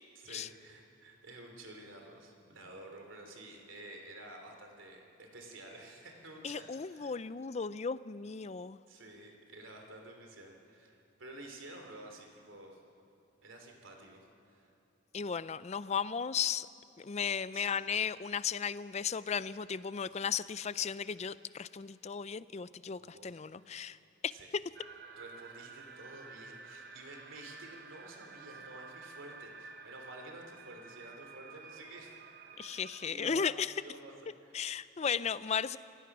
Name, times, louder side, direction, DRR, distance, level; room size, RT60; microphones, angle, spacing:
voice 1, 0.1-7.2 8.9-12.8 13.4-14.7 17.5-17.9 20.0-20.1 23.0-23.7 24.3-24.5 25.1-32.2 32.6-34.1 34.4-34.8, right 2 dB, 75° right, 2 dB, 3.2 m, -51 dB
voice 2, 6.4-8.8 15.1-16.7 17.0-24.0 24.2-24.3 32.6-33.7 34.5-35.8, left 6 dB, 35° left, 16 dB, 0.4 m, -35 dB
sound 1, 24.8-33.1, right 5 dB, 50° right, 1.1 m, -51 dB
26.5 x 16.5 x 6.1 m, 2.7 s
head